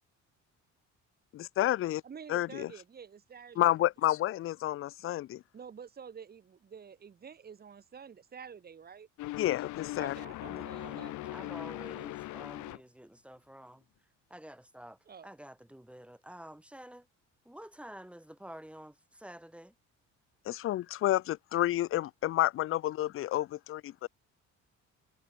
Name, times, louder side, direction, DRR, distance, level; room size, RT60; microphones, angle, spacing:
voice 1, 1.3-2.0 2.3-2.7 3.6-5.4 9.4-10.1 20.5-24.1, left 14 dB, 45° left, 0.5 m, -30 dB
voice 2, 2.0-3.7 5.5-9.1 10.0-11.5 15.1-15.3, right 7 dB, 30° right, 4.9 m, -49 dB
sound 1, 9.2-12.8, left 17 dB, 75° left, 0.9 m, -40 dB
voice 3, 10.4-17.1 17.4-19.8, right 1 dB, 5° right, 2.0 m, -50 dB
cardioid pair, 160°, 30 cm